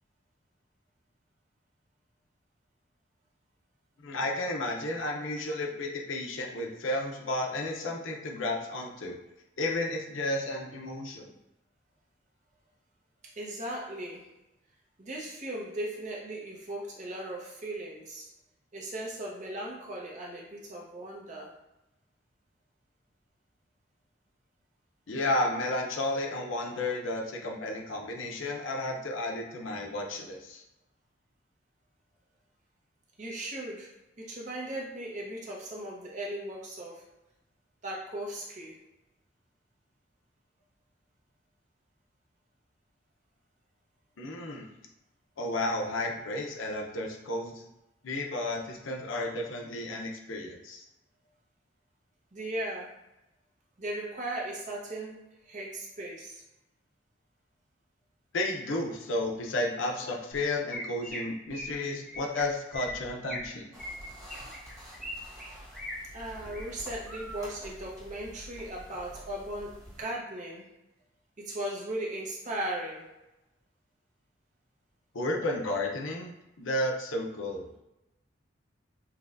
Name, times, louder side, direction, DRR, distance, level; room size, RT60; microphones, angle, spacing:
voice 1, 4.0-9.2 9.6-11.3 25.1-30.6 44.2-44.7 45.4-47.6 48.0-50.8 58.3-63.7 75.1-77.8, left 2 dB, 85° left, 1 dB, 0.7 m, -32 dB
voice 2, 13.4-14.3 15.0-18.3 18.7-21.5 33.2-33.9 34.2-37.0 37.8-38.8 52.3-52.9 53.8-56.4 66.1-70.7 71.4-73.1, right 1 dB, 40° right, -3 dB, 0.8 m, -37 dB
Chirp tweet, 60.7-61.2 61.5-61.7 62.1-62.4 62.7-63.5 63.8-65.1 65.4-65.9 66.4-66.6 67.1-67.4, left 1 dB, ahead, 1.0 m, -39 dB
sound 1, 63.7-70.0, equal, 20° right, 1.2 m, -48 dB
5.7 x 2.3 x 2.5 m, 0.94 s
head